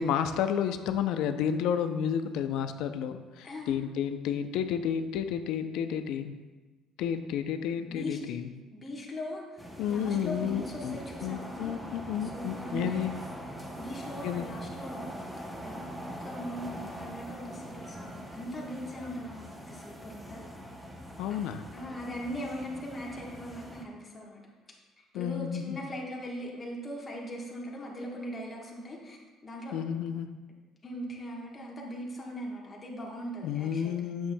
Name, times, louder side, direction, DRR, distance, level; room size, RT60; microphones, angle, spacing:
voice 1, 0.0-6.3 7.0-8.5 9.8-13.1 14.2-14.5 21.2-21.6 25.1-25.8 29.7-30.3 33.4-34.3, left 8 dB, 80° left, 9 dB, 0.5 m, -31 dB
voice 2, 3.4-3.9 7.9-8.2 8.7-11.8 12.2-13.0 13.8-20.5 21.7-24.4 25.0-29.2 29.4-29.7 30.8-34.0, equal, 20° left, -2 dB, 1.2 m, -40 dB
sound 1, 9.6-23.8, equal, 5° right, 0.7 m, -43 dB
8.5 x 7.2 x 2.2 m, 1.3 s
cardioid pair, 140°, 0 cm